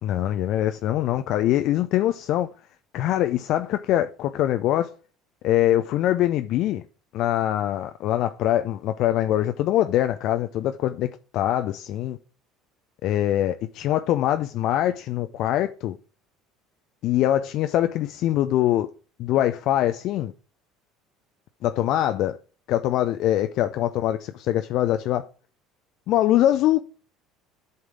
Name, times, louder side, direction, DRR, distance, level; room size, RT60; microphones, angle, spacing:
voice 1, 0.0-2.5 2.9-4.9 5.4-6.8 7.1-12.2 13.0-16.0 17.0-18.9 19.2-20.3 21.6-22.3 22.7-25.3 26.1-26.8, left 13 dB, 55° left, 0.4 m, -23 dB
7.8 x 5.7 x 5.0 m
figure-of-eight pair, 65°, 0 cm